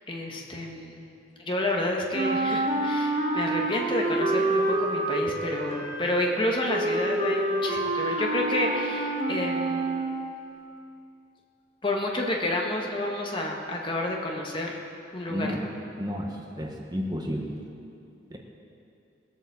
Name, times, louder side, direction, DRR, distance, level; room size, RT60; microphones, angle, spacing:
voice 1, 0.1-1.1 1.4-10.0 11.8-14.8 15.1-15.7, left 1 dB, 25° left, 0 dB, 1.5 m, -30 dB
Wind instrument woodwind instrument, 2.1-10.4, right 2 dB, 45° right, 1.3 m, -28 dB
voice 2, 15.3-15.7 16.0-17.4 18.3-18.4, equal, 20° right, 1 dB, 1.2 m, -32 dB
20.0 x 8.2 x 7.0 m, 2.6 s
head